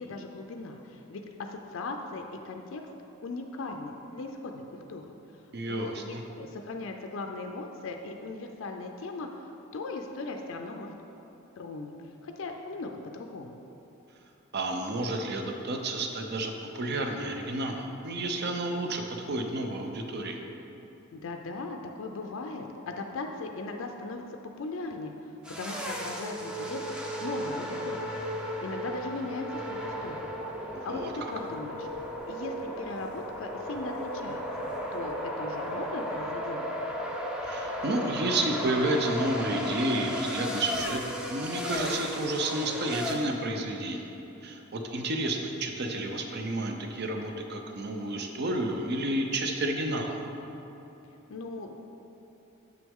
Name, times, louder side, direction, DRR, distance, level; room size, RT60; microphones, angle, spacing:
voice 1, 0.0-2.8 3.2-5.1 5.7-11.0 11.6-11.9 12.2-13.5 21.1-25.1 25.6-26.8 27.2-28.1 28.6-30.3 30.8-31.9 32.3-34.4 34.9-36.7 51.3-51.7, left 3 dB, 60° left, 3 dB, 0.4 m, -38 dB
voice 2, 5.5-6.2 14.5-20.4 30.9-31.1 37.4-41.0 41.3-44.1 44.4-50.2, right 1 dB, 50° right, 4 dB, 0.6 m, -31 dB
sound 1, 25.4-43.1, equal, 5° right, 0.5 m, -35 dB
7.1 x 6.1 x 3.6 m, 3.0 s
head